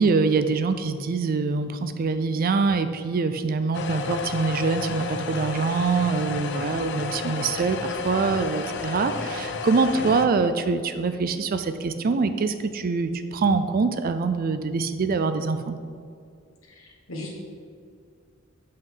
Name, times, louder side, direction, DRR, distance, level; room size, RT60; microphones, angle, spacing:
voice 1, 0.0-15.8, right 4 dB, 45° right, 10 dB, 0.4 m, -24 dB
sound 1, 3.7-10.3, left 4 dB, 60° left, 0.5 m, -31 dB
voice 2, 16.7-17.3, left 1 dB, 80° left, -1 dB, 1.4 m, -37 dB
7.2 x 5.4 x 3.8 m, 2.3 s
head